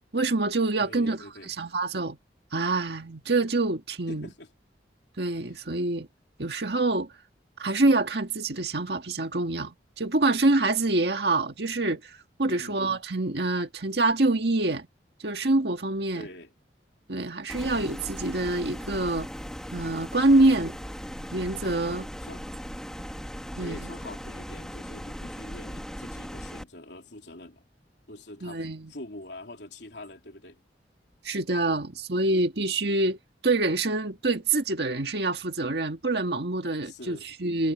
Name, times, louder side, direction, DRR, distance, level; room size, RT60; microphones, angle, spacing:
voice 1, 0.1-2.2 2.5-4.3 5.2-6.1 6.4-7.1 7.6-14.9 15.2-16.2 17.1-19.3 19.7-20.7 21.3-22.1 23.6-23.8 28.4-28.9 31.2-33.2 33.4-37.7, right 2 dB, 70° right, 1.7 m, -26 dB
voice 2, 0.8-1.5 4.1-4.5 5.5-5.6 12.5-12.8 16.1-16.5 20.3-20.7 22.2-22.5 23.6-27.6 28.1-30.6 36.8-37.3, left 1 dB, 80° left, 3.3 m, -44 dB
sound 1, 17.5-26.6, equal, 5° left, 1.9 m, -38 dB
head